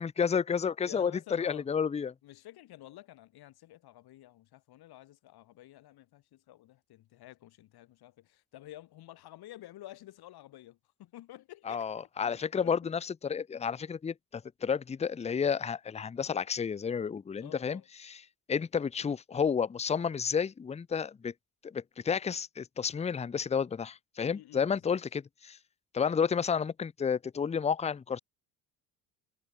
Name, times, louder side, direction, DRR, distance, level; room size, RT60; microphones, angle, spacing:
voice 1, 0.0-2.1 11.7-18.1 18.5-21.3 21.6-25.6 25.9-28.2, left 6 dB, 15° left, 0.6 m, -31 dB
voice 2, 0.6-1.7 2.2-11.9 12.2-12.9 13.6-13.7 17.4-17.9 24.3-25.0, left 14 dB, 60° left, 3.1 m, -51 dB
cardioid pair, 110°, 43 cm